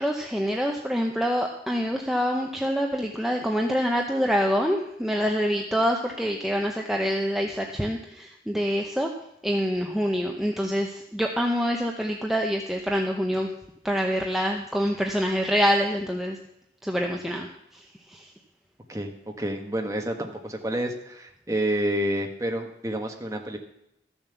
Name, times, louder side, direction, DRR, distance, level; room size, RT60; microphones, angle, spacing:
voice 1, 0.0-9.1 9.4-13.5 13.8-16.4 16.8-18.3, equal, ahead, 1 dB, 0.7 m, -26 dB
voice 2, 19.4-23.6, right 1 dB, 20° right, 3 dB, 1.3 m, -29 dB
13.5 x 7.2 x 6.9 m, 0.79 s
head